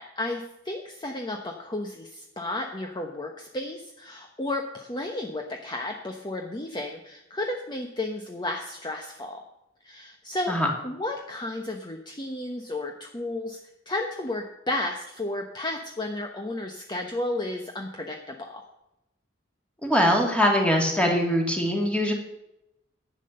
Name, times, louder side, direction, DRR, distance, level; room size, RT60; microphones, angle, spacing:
voice 1, 0.0-9.4 9.8-10.5 10.8-13.6 13.9-18.6, left 2 dB, 25° left, 2 dB, 1.0 m, -33 dB
voice 2, 19.8-22.1, equal, 5° left, 0 dB, 2.6 m, -22 dB
11.5 x 8.7 x 6.6 m, 0.89 s
head